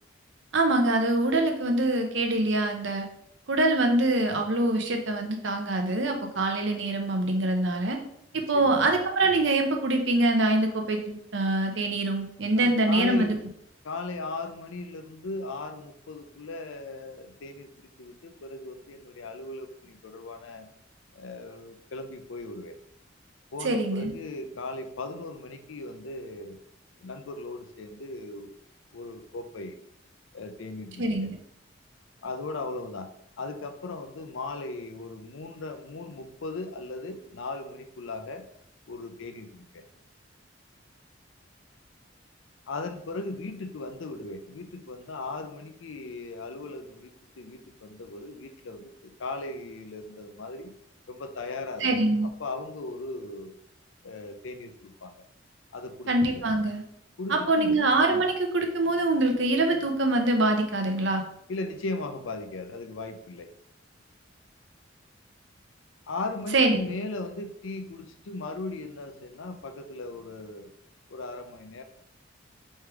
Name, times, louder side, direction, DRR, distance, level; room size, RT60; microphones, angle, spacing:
voice 1, 0.5-3.1 3.5-8.0 8.3-13.4 23.6-24.1 31.0-31.4 51.8-52.3 56.1-56.8 57.3-61.2 66.5-66.8, right 2 dB, 70° right, 4 dB, 0.7 m, -24 dB
voice 2, 8.3-8.8 12.5-13.4 13.8-20.7 21.1-22.8 23.5-26.6 27.0-28.6 28.9-29.8 30.3-31.0 32.2-33.1 33.4-38.5 38.9-39.8 42.7-50.7 51.1-51.9 52.4-53.6 54.0-55.2 55.7-56.5 57.2-57.7 61.5-63.5 66.1-70.7 71.1-71.8, left 2 dB, 90° left, 7 dB, 0.5 m, -37 dB
3.4 x 3.2 x 4.6 m, 0.72 s
head